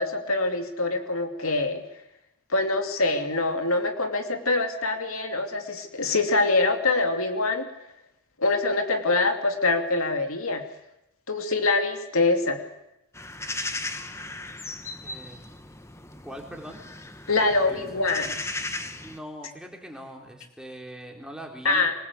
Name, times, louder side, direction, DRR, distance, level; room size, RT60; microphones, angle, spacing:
voice 1, 0.0-1.8 2.5-7.7 8.4-10.6 11.3-12.6 17.3-18.3 21.6-21.9, left 3 dB, 70° left, 5 dB, 2.8 m, -24 dB
sound 1, 13.1-19.2, left 2 dB, 10° left, 1.3 m, -36 dB
voice 2, 15.0-15.4 16.2-16.8 17.7-18.0 19.0-21.9, equal, 5° right, 1 dB, 3.9 m, -41 dB
25.0 x 20.5 x 8.4 m, 0.88 s
head